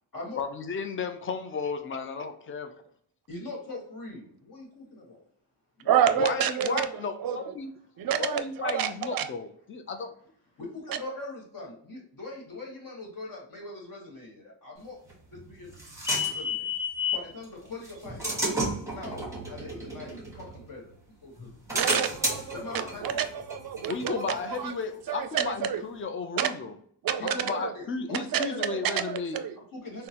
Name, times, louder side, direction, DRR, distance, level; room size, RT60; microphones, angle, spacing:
voice 1, 0.4-2.7 6.2-7.7 8.2-10.1 23.9-26.7 27.2-29.4, left 5 dB, 30° left, 6 dB, 0.5 m, -34 dB
voice 2, 3.3-5.2 5.8-6.0 10.5-15.0 15.3-15.7 16.1-16.7 17.1-18.6 18.9-19.2 19.5-20.9 21.2-21.9 22.5-23.2 24.1-24.5 27.2-28.7 29.6-30.1, left 2 dB, 50° left, -1 dB, 1.5 m, -42 dB
voice 3, 5.9-6.9 7.2-7.5 8.0-9.3 10.9-11.0 21.7-24.7 25.1-25.8 26.4-26.5 27.0-27.7 28.1-29.6, right 9 dB, 55° right, 11 dB, 0.5 m, -28 dB
sound 1, 15.1-17.3 17.8-20.9 21.4-24.8, left 1 dB, 5° right, 1.1 m, -32 dB
3.8 x 2.1 x 2.8 m, 0.63 s
wide cardioid pair, 95°, 42 cm